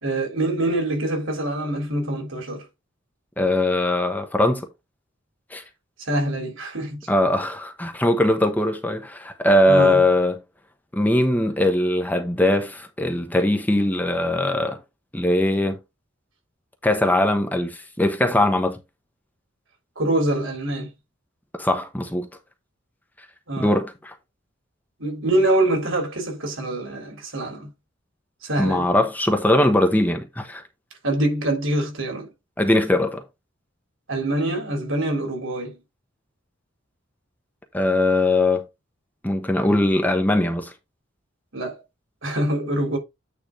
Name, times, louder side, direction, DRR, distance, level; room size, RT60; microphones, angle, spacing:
voice 1, 0.0-2.6 6.0-7.0 9.7-10.0 20.0-20.9 23.5-23.7 25.0-27.7 28.4-28.9 31.0-32.3 34.1-35.8 41.5-41.8 42.2-43.0, right 1 dB, 80° right, 3.6 m, -24 dB
voice 2, 3.4-4.7 5.5-5.6 7.1-10.4 10.9-14.8 15.1-15.8 16.8-18.8 21.6-22.3 23.6-24.1 28.6-30.6 32.6-33.2 37.7-38.6 39.2-40.7, left 1 dB, 10° left, 1.0 m, -20 dB
9.1 x 3.5 x 4.8 m
head